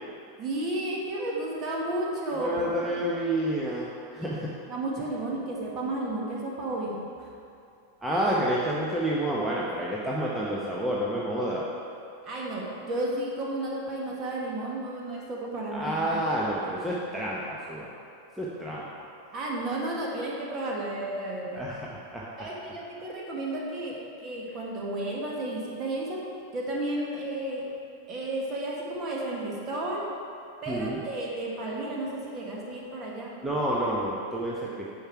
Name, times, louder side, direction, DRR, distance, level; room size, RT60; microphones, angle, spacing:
voice 1, 0.4-3.1 4.2-4.3 4.7-7.3 12.2-15.9 19.3-21.7 22.4-26.3 26.5-27.7 28.1-30.1 30.6-33.4, right 1 dB, 30° right, -2 dB, 1.8 m, -32 dB
voice 2, 2.4-4.5 8.0-11.6 15.7-17.9 18.4-18.9 21.6-21.8 22.1-22.5 30.7-31.0 33.4-34.9, right 1 dB, 5° right, -5 dB, 1.0 m, -29 dB
10.0 x 5.9 x 4.6 m, 2.5 s
figure-of-eight pair, 90°, 0 cm